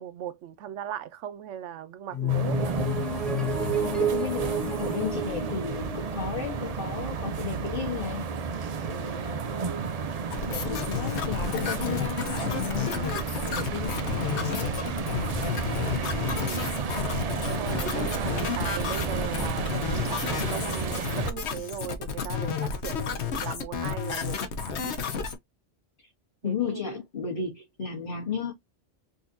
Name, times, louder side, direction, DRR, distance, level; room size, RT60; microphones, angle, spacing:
voice 1, 0.0-2.8 9.5-9.9 16.4-16.7 17.4-25.0 26.4-27.0, right 10 dB, 90° right, 1.0 m, -38 dB
sound 1, 2.1-7.9, right 1 dB, ahead, 1.0 m, -30 dB
sound 2, 2.3-21.3, right 5 dB, 55° right, 0.4 m, -32 dB
voice 2, 3.8-8.3 8.9-9.8 10.4-15.3 26.4-28.5, left 7 dB, 50° left, 1.2 m, -34 dB
sound 3, 10.3-25.4, left 6 dB, 70° left, 1.1 m, -31 dB
3.9 x 2.7 x 2.5 m
omnidirectional pair, 1.2 m